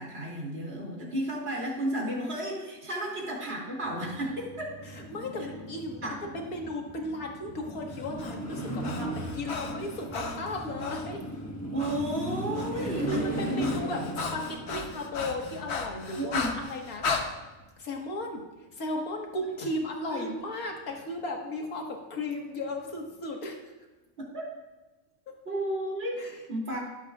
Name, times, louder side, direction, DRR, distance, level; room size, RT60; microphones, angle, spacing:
voice 1, 0.0-4.7 6.0-6.2 11.7-13.8 16.2-16.5 19.6-19.7 20.1-20.3 24.2-24.5 25.4-26.8, right 1 dB, 45° right, -3 dB, 2.9 m, -33 dB
sound 1, 3.8-17.9 22.3-22.7, right 1 dB, 10° left, 1.3 m, -38 dB
voice 2, 4.9-9.1 9.3-11.2 12.8-14.0 14.3-17.3 17.8-18.4 18.7-23.6 25.3-25.4 26.2-26.3, left 1 dB, 80° left, 1 dB, 2.0 m, -35 dB
Breathing, 7.9-11.1 11.8-12.0 12.3-17.3, left 4 dB, 55° left, 1.2 m, -36 dB
19.0 x 8.0 x 2.4 m, 1.1 s
omnidirectional pair, 1.5 m